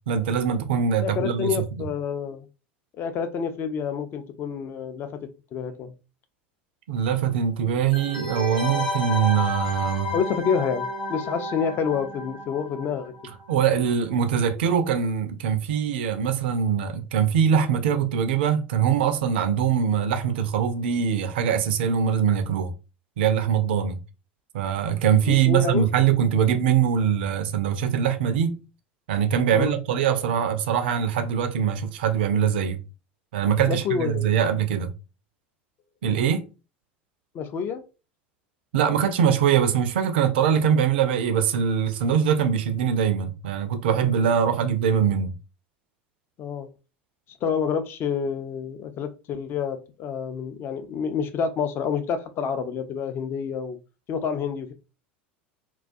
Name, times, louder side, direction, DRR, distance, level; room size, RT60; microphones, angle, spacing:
voice 1, 0.1-1.9 6.9-10.1 13.5-22.7 23.2-24.0 24.5-28.6 29.1-32.8 33.3-34.9 36.0-36.5 38.7-45.4, right 8 dB, 65° right, 0.4 m, -23 dB
voice 2, 1.0-2.5 3.0-5.2 5.5-5.9 10.1-13.1 25.2-25.9 29.5-29.8 33.7-34.3 37.3-37.8 46.4-46.7 47.4-53.8 54.1-54.7, left 6 dB, 40° left, 0.4 m, -28 dB
sound 1, 7.9-13.4 13.7-13.8, left 1 dB, 75° left, 0.9 m, -31 dB
2.3 x 2.2 x 2.5 m
figure-of-eight pair, 80°, 6 cm